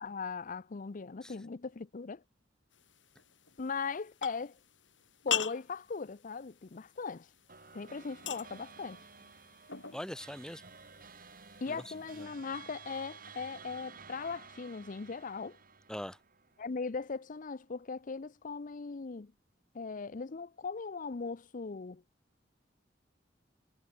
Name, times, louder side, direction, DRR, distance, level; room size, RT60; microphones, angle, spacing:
voice 1, 0.0-2.2 3.6-4.5 5.2-7.3 7.7-9.0 11.6-15.6 16.6-19.3 19.7-22.0, left 4 dB, 45° left, 0.6 m, -39 dB
sound 1, 2.7-12.2, left 9 dB, 80° left, 5.9 m, -43 dB
sound 2, 7.5-17.1, right 5 dB, 50° right, 7.2 m, -54 dB
voice 2, 9.9-10.6 11.7-12.3 15.9-16.2, equal, 5° left, 0.7 m, -42 dB
head